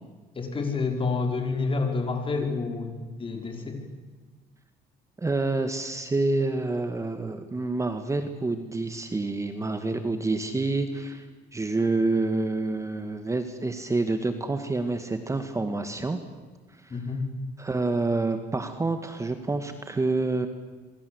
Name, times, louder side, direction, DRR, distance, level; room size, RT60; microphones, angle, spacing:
voice 1, 0.4-3.8 16.9-17.3, left 4 dB, 30° left, 3 dB, 5.3 m, -29 dB
voice 2, 5.2-11.3 11.5-16.2 16.8-17.0 17.6-20.5, right 3 dB, 20° right, 8 dB, 1.9 m, -28 dB
27.0 x 24.0 x 8.1 m, 1.3 s
cardioid pair, 110°, 17 cm